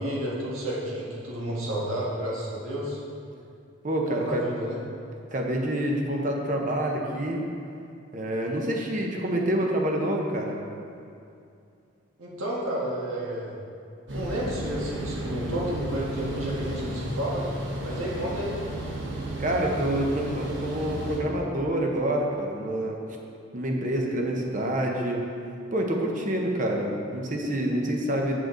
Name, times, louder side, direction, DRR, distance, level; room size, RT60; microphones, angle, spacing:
voice 1, 0.0-3.0 4.0-4.8 12.2-13.6 14.1-17.5 17.8-18.6, equal, 85° right, -4 dB, 1.7 m, -31 dB
voice 2, 3.8-4.4 5.3-7.4 8.1-10.6 19.4-23.0 23.5-25.3 25.7-28.3, right 1 dB, 40° right, 0 dB, 0.9 m, -27 dB
sound 1, 14.1-21.2, right 1 dB, 60° right, 1.1 m, -33 dB
7.8 x 7.6 x 3.9 m, 2.5 s
head